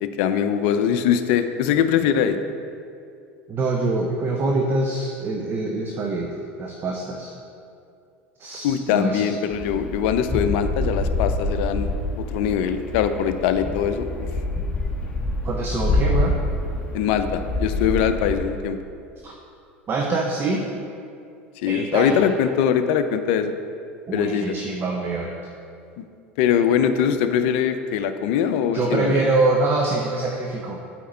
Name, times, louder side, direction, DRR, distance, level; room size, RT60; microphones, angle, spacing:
voice 1, 0.0-2.4 8.6-11.9 12.1-14.1 16.9-18.8 21.6-23.5 24.1-24.6 26.4-29.2, left 8 dB, 65° left, 9 dB, 0.5 m, -22 dB
voice 2, 3.5-7.3 8.4-9.3 15.4-16.4 19.2-19.3 19.9-20.7 21.7-22.3 24.1-25.4 28.7-30.8, right 3 dB, 35° right, 0 dB, 0.8 m, -24 dB
sound 1, 9.5-18.5, left 2 dB, 20° left, 1.2 m, -26 dB
8.4 x 4.4 x 4.3 m, 2.4 s
hypercardioid pair, 80°, 7 cm